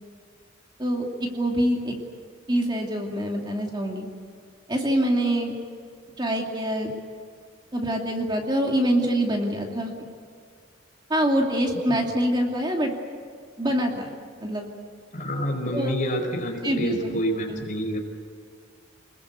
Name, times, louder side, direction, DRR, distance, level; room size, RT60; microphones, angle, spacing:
voice 1, 0.8-2.0 2.5-4.1 4.7-5.5 6.2-6.9 7.7-9.9 11.1-12.9 13.6-14.1 14.4-14.7 15.7-15.9 16.6-17.2 17.5-17.6, equal, 20° right, 1 dB, 2.6 m, -25 dB
voice 2, 15.1-18.0, equal, 35° left, 1 dB, 4.9 m, -28 dB
27.0 x 21.5 x 8.3 m, 2.1 s
head